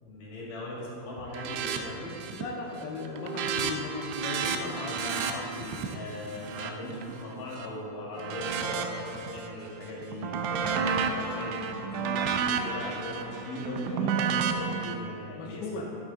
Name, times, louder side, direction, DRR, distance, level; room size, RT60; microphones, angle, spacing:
voice 1, 0.0-2.2 4.5-15.8, left 1 dB, 50° left, -4 dB, 2.8 m, -39 dB
sound 1, 1.3-1.8 2.1-2.5 2.8-7.7 8.2-9.5 9.9-14.9, right 6 dB, 90° right, 2.8 m, -32 dB
voice 2, 2.3-5.0 15.4-15.8, left 4 dB, 80° left, -1 dB, 2.9 m, -37 dB
11.5 x 6.6 x 3.7 m, 3.0 s
omnidirectional pair, 4.9 m